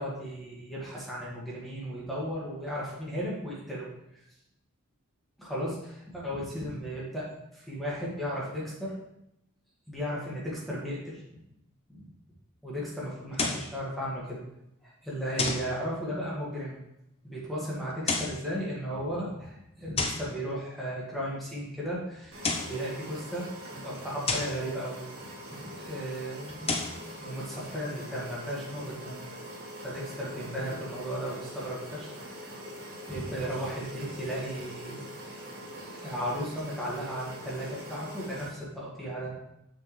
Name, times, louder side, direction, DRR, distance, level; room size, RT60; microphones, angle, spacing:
voice 1, 0.0-4.2 5.4-8.9 9.9-11.4 11.9-12.0 12.6-14.4 14.8-16.8 17.2-26.9 27.2-29.2 29.8-32.6 33.1-35.4 35.7-39.3, equal, ahead, -7 dB, 1.9 m, -35 dB
sound 1, 13.3-13.7 15.4-15.7 17.9-18.4 20.0-20.3 22.2-22.8 24.3-24.6 26.5-27.0, left 3 dB, 25° left, 0.7 m, -30 dB
sound 2, 22.3-38.5, equal, 60° right, 1.9 m, -43 dB
6.7 x 6.5 x 3.2 m, 0.83 s
head